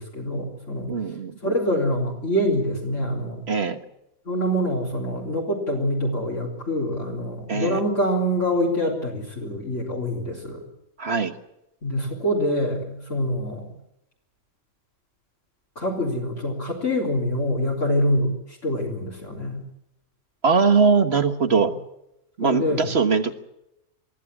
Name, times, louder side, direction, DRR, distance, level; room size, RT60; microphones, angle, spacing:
voice 1, 0.0-0.9 1.4-3.4 4.3-10.6 11.8-13.7 15.8-19.6 21.5-21.7 22.4-22.9, equal, 55° left, -3 dB, 4.2 m, -25 dB
voice 2, 0.9-1.5 3.5-3.8 7.5-7.8 11.0-11.3 20.4-21.7 22.4-23.3, right 5 dB, 45° right, 9 dB, 1.6 m, -21 dB
23.0 x 14.5 x 9.9 m, 0.83 s
omnidirectional pair, 1.5 m